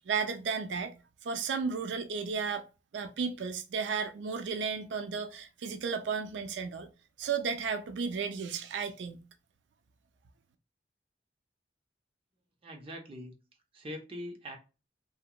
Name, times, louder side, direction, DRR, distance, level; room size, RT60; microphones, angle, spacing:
voice 1, 0.1-0.9 1.2-2.6 2.9-6.9 7.2-9.2, right 5 dB, 85° right, 0.4 m, -33 dB
voice 2, 12.6-13.3 13.7-14.6, equal, 30° right, 0.6 m, -42 dB
2.8 x 2.8 x 2.2 m
head